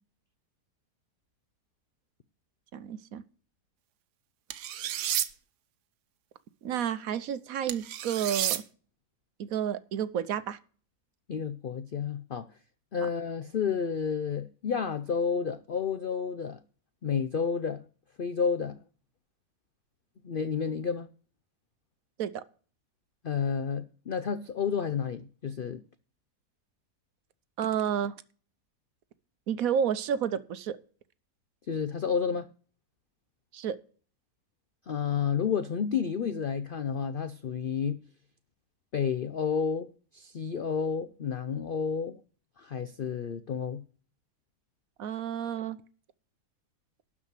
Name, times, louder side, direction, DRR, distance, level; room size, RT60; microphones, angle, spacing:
voice 1, 2.7-3.2 6.6-8.6 9.4-10.6 13.0-13.1 22.2-22.4 27.6-28.1 29.5-30.8 33.5-33.8 45.0-45.8, right 8 dB, 65° right, 1.1 m, -30 dB
sound 1, 4.5-5.3 7.7-8.6, right 11 dB, 90° right, 1.3 m, -31 dB
voice 2, 11.3-12.5 12.9-16.6 17.0-17.8 18.2-18.8 20.2-21.1 23.2-25.8 31.7-32.5 34.9-38.0 38.9-42.2 42.6-43.8, left 6 dB, 65° left, 0.5 m, -30 dB
12.5 x 5.0 x 8.1 m
omnidirectional pair, 1.7 m